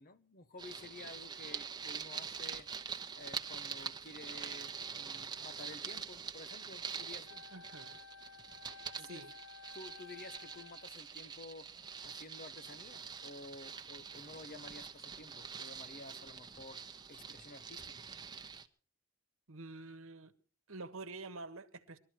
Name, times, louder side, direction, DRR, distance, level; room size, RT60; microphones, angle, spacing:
voice 1, 0.0-2.7 3.2-7.4 9.0-9.2 9.7-11.7 12.0-16.8 17.1-18.0, left 2 dB, 40° left, 0.9 m, -52 dB
sound 1, 0.6-18.7, right 6 dB, 20° right, 0.9 m, -45 dB
Wind instrument woodwind instrument, 7.2-11.0, left 5 dB, 85° left, 1.0 m, -55 dB
voice 2, 7.5-8.0 9.0-9.3 19.5-20.3 20.7-22.0, right 3 dB, 65° right, 1.3 m, -47 dB
21.0 x 13.0 x 4.6 m
head